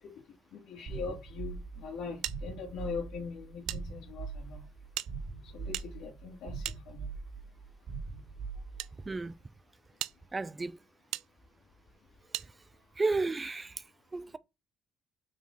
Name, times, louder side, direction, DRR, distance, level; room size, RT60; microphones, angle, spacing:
voice 1, 0.0-4.7 5.4-7.1, left 5 dB, 65° left, 2.6 m, -42 dB
sound 1, 0.9-9.1, right 4 dB, 50° right, 2.9 m, -42 dB
sound 2, 2.2-3.8 4.1-4.2 4.9-7.4 8.2-8.9 9.5-9.6 10.0-10.2 11.1-11.3 12.3-12.5, right 15 dB, 80° right, 0.4 m, -40 dB
voice 2, 9.0-9.4 10.3-10.8 12.4-12.5 13.0-13.8 14.1-14.4, right 3 dB, 15° right, 0.6 m, -33 dB
6.2 x 4.5 x 5.6 m
cardioid pair, 140°, 0 cm